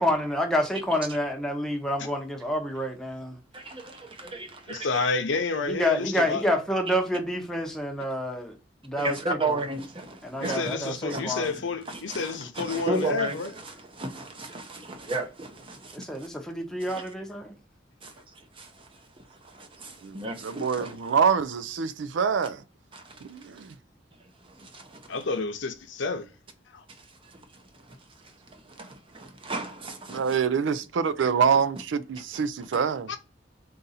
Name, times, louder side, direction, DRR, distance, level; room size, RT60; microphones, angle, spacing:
voice 1, 0.0-3.4 5.7-8.5 8.8-9.2 9.5-9.6 10.2-11.5 15.9-17.5, equal, 5° left, 0.8 m, -28 dB
voice 2, 3.5-4.9 6.9-7.0 9.0-16.3 16.9-17.1 18.0-21.1 22.9-23.2 23.6-23.7 24.4-25.2 26.9-30.4 32.3-32.4, right 2 dB, 30° right, 0.7 m, -35 dB
voice 3, 4.7-6.4 10.4-13.5 25.1-26.3 26.7-26.8 33.1-33.2, left 4 dB, 90° left, 0.7 m, -29 dB
voice 4, 20.4-22.6 23.2-23.7 30.1-33.1, right 6 dB, 90° right, 0.4 m, -25 dB
3.9 x 2.5 x 4.1 m
head